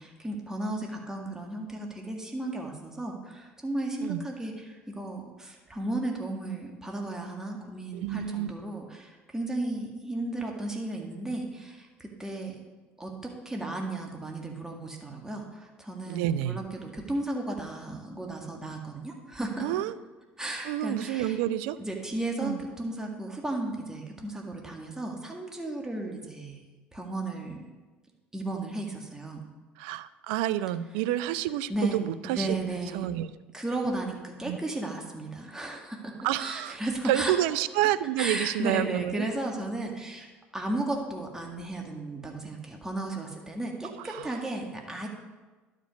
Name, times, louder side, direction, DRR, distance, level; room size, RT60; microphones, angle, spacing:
voice 1, 0.0-12.6 13.0-19.7 20.4-21.4 21.8-26.6 26.9-27.6 28.3-29.4 31.7-32.0 32.2-33.1 33.5-36.1 36.4-37.3 38.2-40.3 40.5-45.1, right 2 dB, 10° right, 0 dB, 1.8 m, -34 dB
voice 2, 7.9-8.5 16.1-16.6 19.6-19.9 20.6-21.8 22.4-22.6 29.8-33.3 34.4-34.6 36.2-36.8 37.0-39.3 44.1-44.3, right 13 dB, 80° right, 15 dB, 0.4 m, -29 dB
11.5 x 5.2 x 5.2 m, 1.3 s
hypercardioid pair, 70°, 5 cm